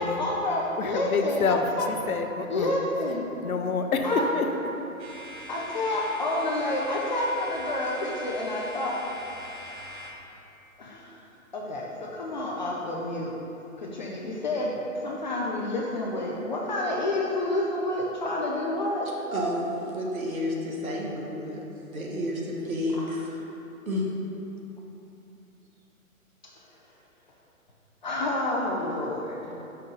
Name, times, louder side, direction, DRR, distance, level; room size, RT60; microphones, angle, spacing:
voice 1, 0.0-1.9 2.5-3.3 4.0-4.2 5.5-8.9 10.8-11.2 11.5-13.3 13.8-19.1 28.0-29.5, left 1 dB, 35° left, -3 dB, 0.5 m, -29 dB
voice 2, 0.8-2.8 3.4-4.5, left 4 dB, 80° left, 5 dB, 0.7 m, -27 dB
sound 1, 5.0-10.1, left 1 dB, 55° right, 1.4 m, -42 dB
voice 3, 19.3-21.6 21.9-23.4 23.8-24.0, left 1 dB, 75° right, -2 dB, 1.4 m, -30 dB
5.5 x 3.7 x 5.4 m, 3.0 s
figure-of-eight pair, 135°, 42 cm